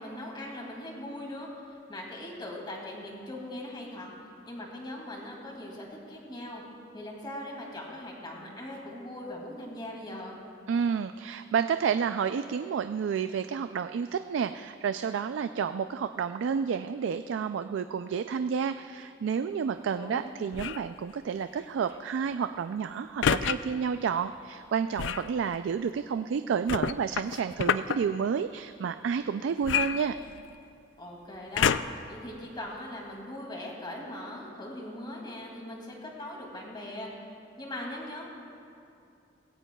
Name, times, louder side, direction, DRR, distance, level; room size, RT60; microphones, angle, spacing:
voice 1, 0.0-1.5 1.9-4.1 4.4-6.6 6.9-10.4 19.9-20.3 31.0-37.1 37.6-38.3, left 1 dB, 25° left, -1 dB, 2.4 m, -40 dB
voice 2, 10.7-30.2, right 6 dB, 80° right, 10 dB, 0.3 m, -30 dB
sound 1, 20.5-20.9 23.2-23.6 25.0-25.3 26.7-28.0 29.6-30.6 31.5-32.1 32.8-32.9, left 8 dB, 70° left, 0.3 m, -28 dB
20.0 x 16.5 x 2.3 m, 2.6 s
head